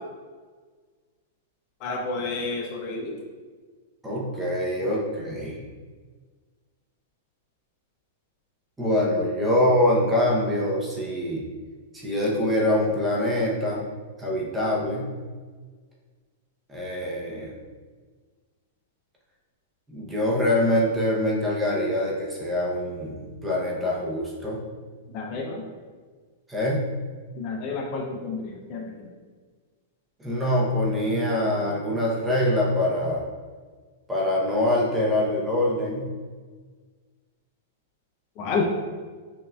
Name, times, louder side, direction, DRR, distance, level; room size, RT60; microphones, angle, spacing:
voice 1, 1.8-3.2 25.1-25.6 27.4-28.9 38.4-38.7, left 3 dB, 35° left, 0 dB, 0.4 m, -30 dB
voice 2, 4.0-5.6 8.8-11.5 11.9-13.8 14.2-15.1 16.7-17.5 19.9-24.7 26.5-26.9 30.2-33.2 34.1-36.1, left 1 dB, 10° right, -4 dB, 0.6 m, -24 dB
5.5 x 2.5 x 2.2 m, 1.5 s
supercardioid pair, 160°, 0 cm